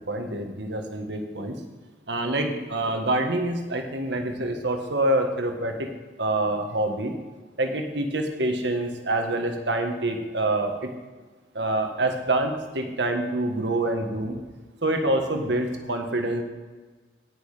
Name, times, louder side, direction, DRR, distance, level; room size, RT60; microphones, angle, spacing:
voice 1, 0.1-1.6 2.1-5.9 6.2-7.1 7.6-10.9 11.5-14.4 14.8-16.4, right 1 dB, 75° right, 4 dB, 1.6 m, -26 dB
17.5 x 6.4 x 5.0 m, 1.3 s
head